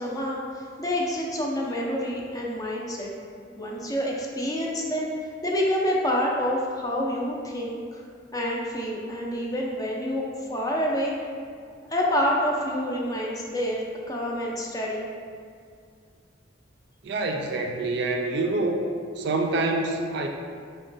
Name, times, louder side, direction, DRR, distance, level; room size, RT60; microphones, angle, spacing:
voice 1, 0.0-3.1 3.6-5.1 5.4-8.0 8.3-11.1 11.9-15.1, equal, 20° left, -2 dB, 0.5 m, -27 dB
voice 2, 17.0-18.8 19.2-20.3, right 2 dB, 60° right, 2 dB, 0.4 m, -26 dB
5.0 x 2.2 x 3.9 m, 2.1 s
head